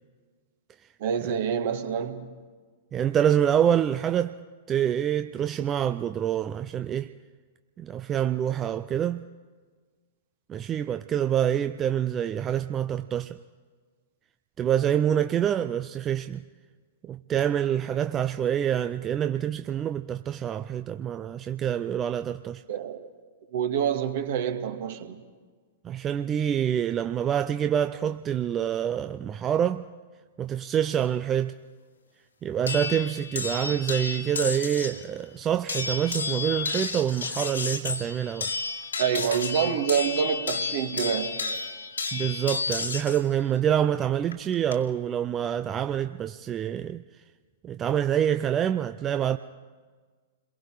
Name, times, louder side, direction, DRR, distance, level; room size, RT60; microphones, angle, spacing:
voice 1, 1.0-2.3 22.7-23.1 23.5-25.2 39.0-41.4, right 8 dB, 55° right, 2.1 m, -27 dB
voice 2, 2.9-4.3 4.7-7.1 7.8-9.2 10.5-13.4 14.6-16.4 17.0-22.6 25.8-29.8 30.4-31.5 32.4-38.5 42.1-47.0 47.6-49.4, right 9 dB, 25° right, 0.6 m, -26 dB
sound 1, 32.7-35.0 35.7-43.2 44.3-44.7, left 4 dB, 80° left, 2.3 m, -32 dB
30.0 x 22.5 x 5.0 m
figure-of-eight pair, 105°, 0 cm